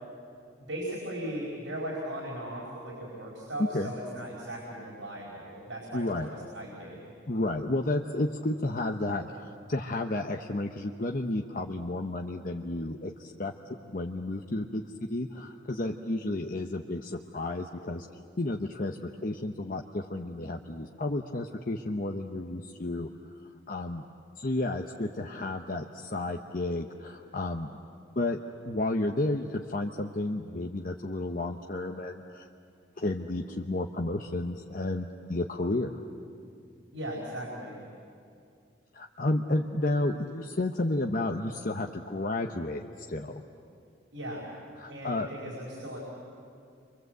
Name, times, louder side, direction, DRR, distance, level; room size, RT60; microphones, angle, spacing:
voice 1, 0.6-7.1 36.9-37.9 44.1-44.5 44.9-46.0, right 1 dB, 90° right, -3 dB, 5.0 m, -38 dB
voice 2, 3.6-3.9 5.9-6.3 7.3-13.5 13.9-18.1 18.4-23.1 23.7-24.0 24.4-27.7 28.2-28.4 28.6-32.5 33.0-35.9 38.9-42.8 43.1-43.4 44.8-45.3, left 2 dB, 45° left, 3 dB, 0.9 m, -32 dB
30.0 x 24.0 x 8.0 m, 2.4 s
head